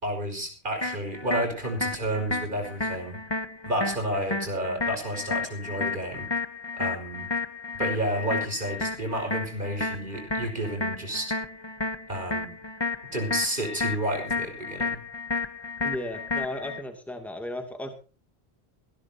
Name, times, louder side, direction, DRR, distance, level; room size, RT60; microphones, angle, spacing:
voice 1, 0.0-3.2 3.6-6.3 6.8-7.3 7.8-11.3 12.1-12.6 13.1-15.0, right 1 dB, 55° right, 3 dB, 5.6 m, -31 dB
sound 1, 0.8-16.8, left 3 dB, 25° left, 1.2 m, -32 dB
voice 2, 15.8-17.9, left 1 dB, ahead, 5 dB, 2.6 m, -35 dB
21.0 x 16.0 x 2.9 m, 0.35 s
omnidirectional pair, 1.0 m